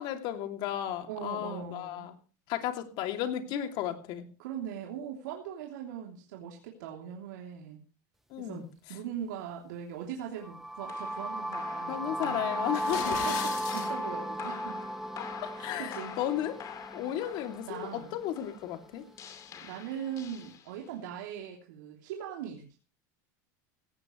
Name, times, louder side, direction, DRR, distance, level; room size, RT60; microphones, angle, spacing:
voice 1, 0.0-2.1 2.5-4.3 8.3-9.0 11.9-13.2 15.2-16.6 16.9-19.1, left 11 dB, 50° left, 6 dB, 2.8 m, -34 dB
voice 2, 1.1-2.1 4.4-7.8 8.4-8.6 8.9-12.4 12.7-12.8 13.2-14.8 15.5-16.2 17.7-18.1 19.6-22.8, right 9 dB, 80° right, 0 dB, 3.2 m, -40 dB
sound 1, 10.4-18.3, right 1 dB, 5° right, 0.9 m, -36 dB
sound 2, 10.9-21.0, left 9 dB, 35° left, 2.6 m, -47 dB
sound 3, 12.7-13.9, left 9 dB, 70° left, 4.2 m, -36 dB
16.5 x 16.5 x 3.2 m, 0.35 s
supercardioid pair, 140°, 10 cm